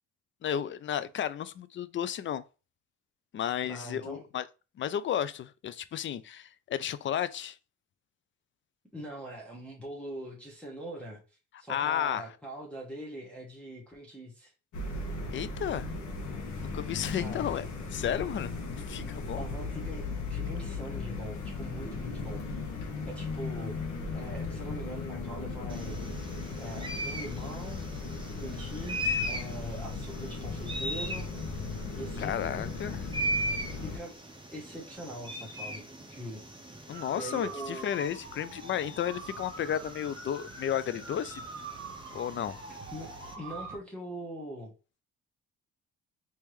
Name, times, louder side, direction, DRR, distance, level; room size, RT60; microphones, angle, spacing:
voice 1, 0.4-2.4 3.3-4.5 4.8-7.6 11.7-12.3 15.3-15.9 16.6-17.6 17.9-19.4 32.2-33.1 36.9-41.4 42.1-42.6, left 9 dB, 40° left, 0.4 m, -33 dB
voice 2, 3.6-4.3 8.9-14.5 17.2-17.6 19.4-22.6 23.1-26.3 26.6-31.3 31.9-32.4 33.8-34.2 34.5-36.4 36.8-36.9 37.2-37.9 42.9-44.7, right 1 dB, 5° left, 1.2 m, -42 dB
sound 1, 14.7-34.0, left 3 dB, 75° left, 1.2 m, -37 dB
sound 2, 25.7-43.3, equal, 15° right, 0.8 m, -39 dB
sound 3, 36.9-43.8, right 3 dB, 45° right, 1.2 m, -44 dB
3.4 x 2.9 x 3.1 m
cardioid pair, 90°, 30 cm